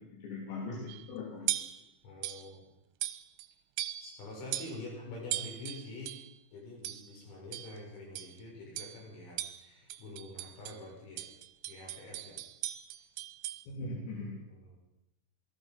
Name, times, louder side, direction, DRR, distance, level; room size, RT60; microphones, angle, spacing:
voice 1, 0.0-1.5 13.7-14.4, left 2 dB, 85° left, -3 dB, 6.4 m, -40 dB
sound 1, 0.9-1.1 1.5-1.8 2.2-2.5 3.0-3.5 3.8-4.2 4.5-4.8 5.3-6.3 6.8-7.2 7.5-7.8 8.2-8.4 8.8-9.0 9.4-10.8 11.2-13.6, right 14 dB, 75° right, 3.0 m, -39 dB
voice 2, 2.0-2.7 4.0-6.1 6.5-11.3 11.7-12.4 13.7-13.8 14.1-14.8, left 2 dB, 65° left, -2 dB, 9.4 m, -46 dB
27.5 x 20.5 x 5.5 m, 0.88 s
omnidirectional pair, 5.8 m